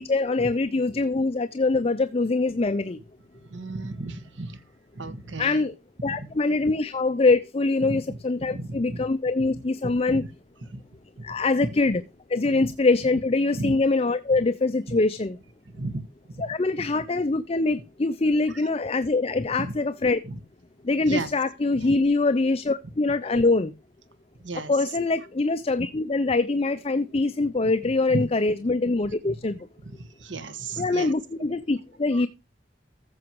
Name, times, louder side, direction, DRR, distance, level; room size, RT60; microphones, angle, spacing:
voice 1, 0.0-3.0 5.4-5.7 6.0-10.2 11.2-12.0 12.3-15.4 16.4-20.2 20.8-23.7 24.7-29.7 30.8-32.3, left 3 dB, 30° left, 0.6 m, -24 dB
voice 2, 3.3-4.6 4.9-5.7 6.0-6.3 6.6-6.7 7.8-9.1 10.1-10.3 10.7-10.8 11.6-11.7 12.5-12.7 13.5-13.7 15.7-16.5 18.5-18.7 19.6-19.7 20.2-20.4 21.1-21.3 21.8-21.9 24.4-24.7 28.1-28.2 29.3-29.4 29.8-31.1 32.1-32.2, right 2 dB, 80° right, 1.6 m, -34 dB
14.5 x 7.0 x 3.0 m
head